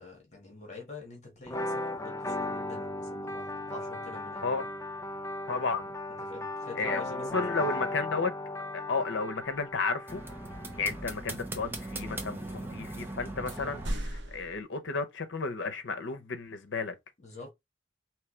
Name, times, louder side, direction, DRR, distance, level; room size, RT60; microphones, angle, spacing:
voice 1, 0.0-4.4 5.7-5.9 6.2-7.8 17.2-17.5, left 3 dB, 40° left, 1.6 m, -47 dB
sound 1, 1.5-11.1, left 2 dB, 15° left, 0.4 m, -36 dB
voice 2, 5.5-5.8 6.8-8.3 8.7-10.2 10.8-17.0, left 4 dB, 80° left, 0.8 m, -33 dB
sound 2, 10.1-13.9, right 2 dB, 10° right, 0.8 m, -39 dB
sound 3, 13.5-14.6, equal, 70° right, 1.0 m, -36 dB
4.8 x 3.2 x 3.2 m
head